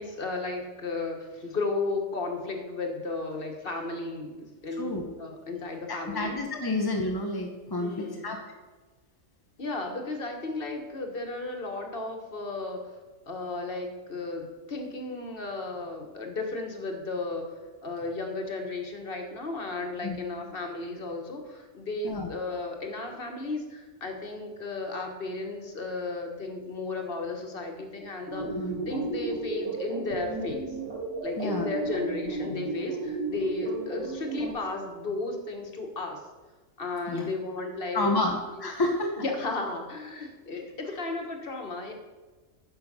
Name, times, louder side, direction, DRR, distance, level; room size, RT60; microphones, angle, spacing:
voice 1, 0.0-6.4 7.8-8.3 9.6-13.0 13.3-28.5 28.9-30.8 31.2-36.2 36.8-38.1 38.5-38.7 39.2-41.9, left 3 dB, 40° left, 4 dB, 1.4 m, -34 dB
voice 2, 5.9-8.4 20.0-20.2 22.0-22.3 28.6-28.8 31.4-31.7 37.1-37.3 37.9-39.1, left 2 dB, 25° left, 2 dB, 0.5 m, -29 dB
sound 1, 28.3-34.5, right 2 dB, 70° right, 2.5 m, -33 dB
9.8 x 6.4 x 5.3 m, 1.3 s
omnidirectional pair, 1.5 m